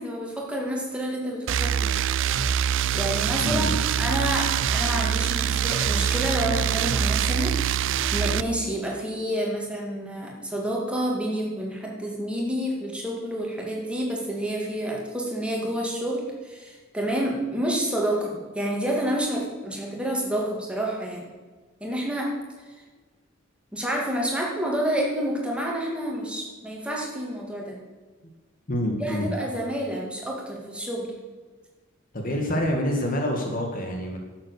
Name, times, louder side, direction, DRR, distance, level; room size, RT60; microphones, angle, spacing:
voice 1, 0.0-1.9 2.9-7.8 8.1-21.3 21.8-22.3 23.7-27.8 29.0-31.1, right 1 dB, 5° right, -2 dB, 2.3 m, -29 dB
sound 1, 1.5-8.4, right 8 dB, 60° right, 0.4 m, -24 dB
voice 2, 28.7-29.3 32.1-34.2, equal, 40° left, 2 dB, 1.6 m, -26 dB
11.0 x 7.6 x 6.5 m, 1.3 s
head